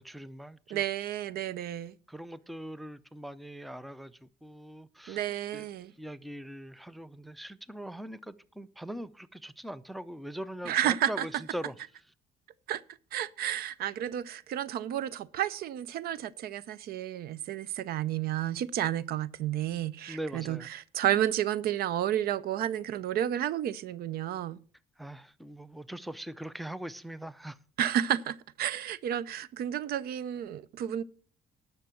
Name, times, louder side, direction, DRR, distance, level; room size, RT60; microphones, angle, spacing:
voice 1, 0.0-0.8 2.1-5.2 5.5-5.7 6.0-11.7 20.1-20.7 25.0-27.6, right 1 dB, ahead, 0.5 m, -41 dB
voice 2, 0.7-1.9 5.1-5.9 10.6-11.3 12.7-12.8 13.1-24.6 27.8-31.0, right 11 dB, 65° right, 0.6 m, -31 dB
11.5 x 6.6 x 6.1 m
cardioid pair, 110°, 17 cm